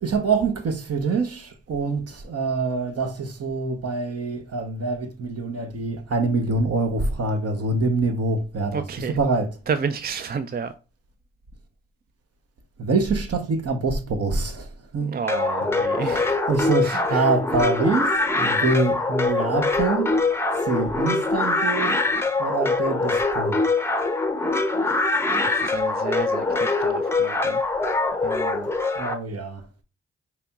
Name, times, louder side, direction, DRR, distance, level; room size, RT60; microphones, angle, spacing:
voice 1, 0.0-9.5 12.8-15.2 16.1-16.2 16.5-20.2 20.6-22.0 22.4-23.6 29.0-29.7, right 3 dB, 55° right, 0.9 m, -25 dB
voice 2, 8.7-9.2 9.7-10.7 15.0-16.3 16.8-17.3 25.4-27.6 28.2-28.7, right 6 dB, 35° right, 0.4 m, -31 dB
sound 1, 15.3-29.1, left 3 dB, 10° left, 0.7 m, -23 dB
5.0 x 2.9 x 2.3 m
supercardioid pair, 45°, 29 cm